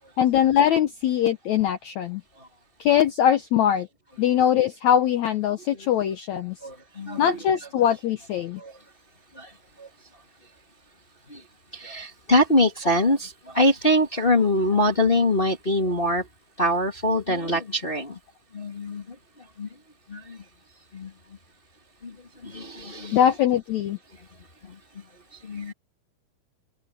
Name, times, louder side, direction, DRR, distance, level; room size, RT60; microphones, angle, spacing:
voice 1, 0.2-2.2 2.8-3.9 4.2-6.5 7.2-8.6 23.1-24.0, left 10 dB, 80° left, 1.6 m, -22 dB
voice 2, 6.6-7.4 8.6-8.7 9.4-9.5 9.8-9.9 11.3-11.4 11.7-16.2 16.6-18.1 18.5-19.0 19.6-19.7 20.1-20.4 20.9-21.1 22.0-22.1 22.4-23.2 25.5-25.7, left 1 dB, 25° left, 1.1 m, -23 dB
omnidirectional pair, 4.5 m